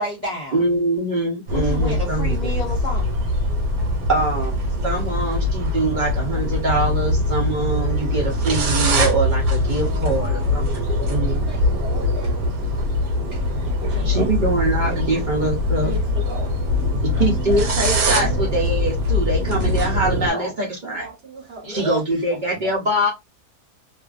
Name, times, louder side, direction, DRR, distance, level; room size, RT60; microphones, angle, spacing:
voice 1, 0.0-0.6 1.5-3.1 9.7-10.6 13.9-14.2 17.1-17.7 21.6-22.0, left 1 dB, 55° left, 0.5 m, -31 dB
voice 2, 0.5-2.5 4.1-11.4 14.1-15.9 17.0-21.1 21.7-23.1, right 2 dB, 85° right, 0.4 m, -23 dB
sound 1, 1.5-20.3, left 1 dB, 70° right, 1.2 m, -22 dB
voice 3, 10.8-13.0 13.3-14.6 14.9-15.2 15.7-16.9 17.3-17.9 18.1-18.3 19.9-20.5 20.9-21.9 22.6-22.9, right 3 dB, 45° right, 1.0 m, -39 dB
2.6 x 2.3 x 2.3 m
omnidirectional pair, 1.7 m